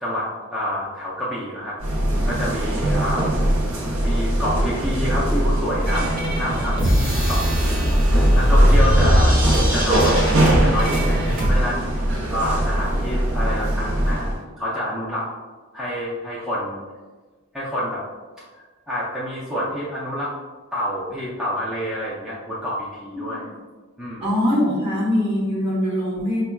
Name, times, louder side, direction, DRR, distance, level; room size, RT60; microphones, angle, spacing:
voice 1, 0.0-1.8 2.2-3.3 4.0-6.1 6.4-9.4 9.7-10.3 10.6-11.9 12.3-14.3 14.6-15.2 15.7-16.8 17.5-18.0 18.4-20.3 20.7-23.5 24.0-24.2, equal, 5° right, -9 dB, 0.4 m, -28 dB
sound 1, 1.8-14.4, right 1 dB, 70° right, 0.7 m, -21 dB
sound 2, 5.9-11.5, equal, 40° right, 1.1 m, -20 dB
voice 2, 24.2-26.4, left 1 dB, 20° right, -9 dB, 1.3 m, -22 dB
5.4 x 2.2 x 2.2 m, 1.3 s
head